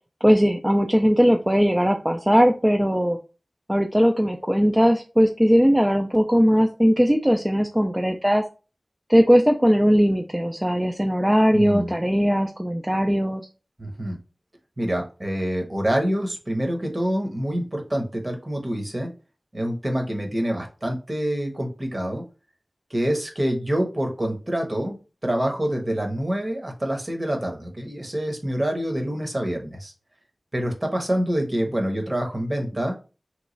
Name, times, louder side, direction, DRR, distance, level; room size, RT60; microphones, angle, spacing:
voice 1, 0.2-3.2 3.7-8.4 9.1-13.4, equal, 10° right, 2 dB, 0.3 m, -19 dB
voice 2, 11.5-11.9 13.8-14.2 14.8-19.1 19.5-22.2 22.9-29.9 30.5-32.9, equal, 35° right, 3 dB, 0.9 m, -26 dB
3.0 x 2.3 x 3.8 m, 0.33 s
wide cardioid pair, 70°, 0 cm